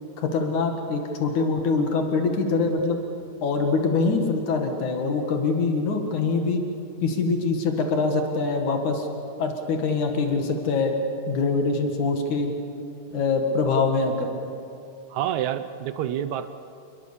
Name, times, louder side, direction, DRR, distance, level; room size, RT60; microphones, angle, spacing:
voice 1, 0.2-3.0 3.4-6.6 7.0-9.1 9.4-10.9 11.3-12.5 13.1-14.3, left 4 dB, 90° left, 4 dB, 3.4 m, -24 dB
voice 2, 15.1-16.5, right 10 dB, 80° right, 11 dB, 2.1 m, -28 dB
28.5 x 21.0 x 6.9 m, 2.6 s
omnidirectional pair, 3.3 m